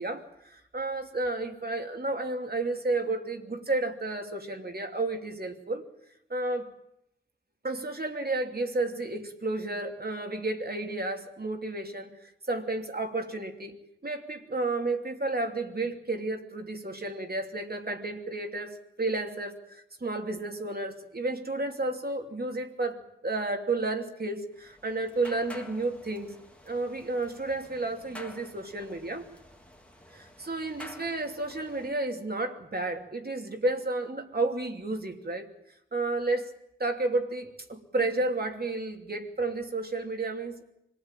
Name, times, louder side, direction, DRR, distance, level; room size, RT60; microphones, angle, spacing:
voice 1, 0.0-5.9 6.3-6.7 7.6-13.8 14.0-26.3 26.7-29.2 30.1-35.5 35.9-36.5 36.8-40.7, right 2 dB, 50° right, 4 dB, 2.9 m, -32 dB
sound 1, 24.5-31.9, left 1 dB, 5° left, 3.6 m, -50 dB
25.5 x 19.0 x 9.1 m, 0.80 s
wide cardioid pair, 75°, 20 cm